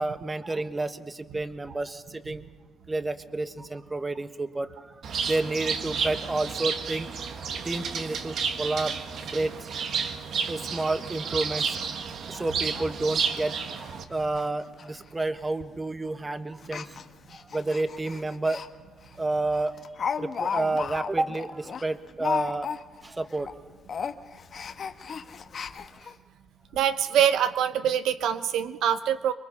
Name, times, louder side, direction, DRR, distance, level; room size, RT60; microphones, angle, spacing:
voice 1, 0.0-2.4 2.9-4.9 5.2-7.1 7.4-9.5 10.5-11.8 12.3-17.0 17.5-18.6 19.2-19.8 20.2-22.7 23.0-23.5, right 2 dB, 20° right, 10 dB, 1.3 m, -30 dB
Bird, 5.0-14.0, right 6 dB, 65° right, 1.6 m, -31 dB
Speech, 12.3-12.4 12.8-12.9 13.2-13.3 13.8-13.9 14.2-14.5 14.7-14.8 15.6-15.8 16.6-18.7 19.0-19.2 19.5-23.1 23.3-23.6 23.9-26.1 26.7-26.8 27.1-27.2, left 6 dB, 50° left, 1.2 m, -34 dB
voice 2, 26.7-29.3, right 9 dB, 80° right, 11 dB, 0.8 m, -24 dB
25.5 x 22.5 x 5.6 m, 1.3 s
cardioid pair, 90°, 0 cm